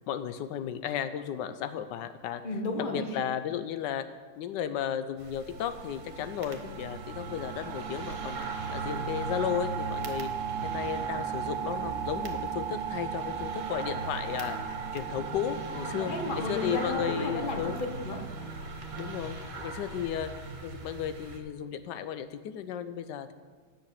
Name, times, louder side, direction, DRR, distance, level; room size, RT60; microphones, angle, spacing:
voice 1, 0.1-2.4 2.8-4.1 4.4-8.4 8.7-10.3 10.6-16.1 16.5-17.8 19.0-20.3 20.6-23.3, left 9 dB, 90° left, 10 dB, 1.3 m, -34 dB
voice 2, 2.4-3.2 15.7-18.2, left 2 dB, 30° left, 4 dB, 1.2 m, -33 dB
sound 1, 5.2-21.4, right 2 dB, 50° right, 1.4 m, -40 dB
sound 2, 5.5-19.0, right 9 dB, 75° right, 1.1 m, -37 dB
10.0 x 5.9 x 8.2 m, 1.5 s
omnidirectional pair, 1.9 m